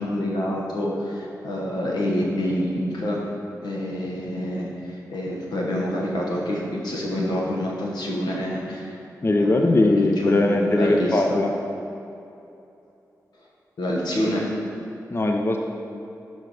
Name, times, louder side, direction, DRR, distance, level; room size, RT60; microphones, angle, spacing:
voice 1, 0.0-3.2 3.6-9.0 9.4-11.4 13.8-14.5, equal, 85° left, -2 dB, 1.1 m, -27 dB
voice 2, 9.2-11.5 15.1-15.6, left 2 dB, 35° left, 2 dB, 0.6 m, -20 dB
6.2 x 4.6 x 5.3 m, 2.8 s
cardioid pair, 50°, 7 cm